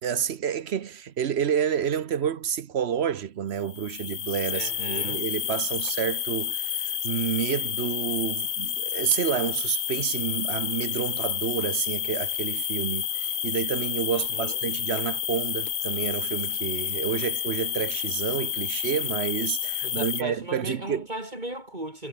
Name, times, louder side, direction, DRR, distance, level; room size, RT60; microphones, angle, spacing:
voice 1, 0.0-21.1, right 8 dB, 80° right, 1.1 m, -29 dB
sound 1, 3.6-20.2, left 10 dB, 60° left, 0.8 m, -30 dB
voice 2, 4.5-5.2 14.1-14.6 19.8-22.1, right 1 dB, 45° right, 5.3 m, -37 dB
omnidirectional pair, 1.1 m